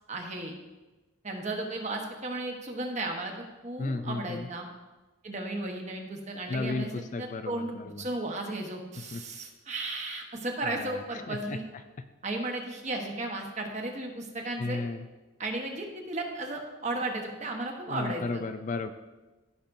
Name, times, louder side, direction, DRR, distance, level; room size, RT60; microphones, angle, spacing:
voice 1, 0.1-0.5 1.2-3.3 3.6-4.7 5.2-11.6 12.2-14.8 15.4-18.4, right 2 dB, 35° right, 2 dB, 1.1 m, -35 dB
voice 2, 3.8-4.5 6.5-8.0 9.1-9.2 10.6-11.0 11.3-11.6 14.6-15.1 17.9-18.9, left 3 dB, 35° left, 9 dB, 0.3 m, -34 dB
15.0 x 5.9 x 2.6 m, 1.2 s
head